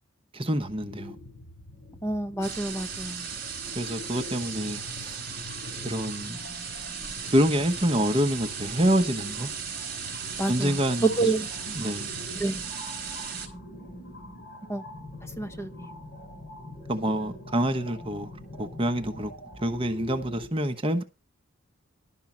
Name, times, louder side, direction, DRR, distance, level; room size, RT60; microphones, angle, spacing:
voice 1, 0.3-1.2 3.7-5.2 5.8-6.4 7.3-9.5 10.5-11.3 11.7-12.1 16.9-18.3 18.6-19.3 19.6-21.0, equal, 25° right, 0.9 m, -27 dB
sound 1, 0.6-20.5, left 2 dB, 50° left, 4.0 m, -44 dB
voice 2, 2.0-3.3 10.4-11.4 12.4-12.5 14.7-14.8 15.4-15.9, right 2 dB, 10° left, 1.2 m, -28 dB
sound 2, 2.4-13.5, right 7 dB, 45° right, 4.1 m, -36 dB
12.0 x 5.5 x 7.3 m
head